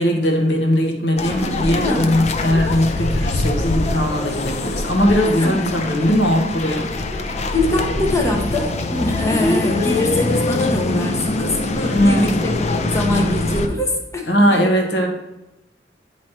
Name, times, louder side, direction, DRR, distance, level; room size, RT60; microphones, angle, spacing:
voice 1, 0.0-6.9 11.9-12.4 14.3-15.1, equal, 70° left, 2 dB, 1.1 m, -19 dB
sound 1, 1.2-13.7, left 2 dB, 40° left, 0.5 m, -23 dB
voice 2, 1.8-2.2 5.4-5.7 7.5-12.5 12.9-14.6, left 1 dB, 15° left, 0 dB, 0.9 m, -23 dB
9.1 x 3.1 x 4.3 m, 0.95 s
head